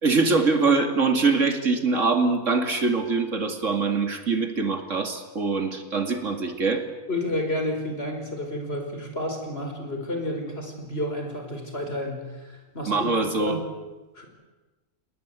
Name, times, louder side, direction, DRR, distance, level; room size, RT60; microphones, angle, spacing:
voice 1, 0.0-6.8 12.9-13.6, right 4 dB, 65° right, 5 dB, 2.8 m, -23 dB
voice 2, 7.1-13.1 13.4-13.6 14.2-14.3, left 1 dB, 50° left, 4 dB, 5.2 m, -30 dB
28.5 x 19.5 x 8.3 m, 1.2 s
omnidirectional pair, 1.4 m